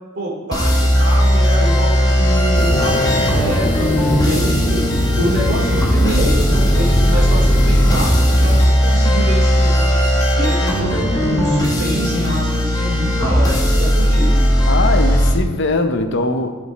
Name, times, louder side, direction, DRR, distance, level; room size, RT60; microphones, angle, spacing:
voice 1, 0.1-3.9 4.2-14.4, right 1 dB, 55° right, -3 dB, 2.4 m, -26 dB
sound 1, 0.5-15.3, equal, 15° left, 1.1 m, -16 dB
sound 2, 2.5-8.7, equal, 40° left, 1.7 m, -22 dB
voice 2, 14.7-16.5, left 2 dB, 60° left, 7 dB, 0.7 m, -20 dB
13.5 x 5.2 x 4.1 m, 1.4 s
head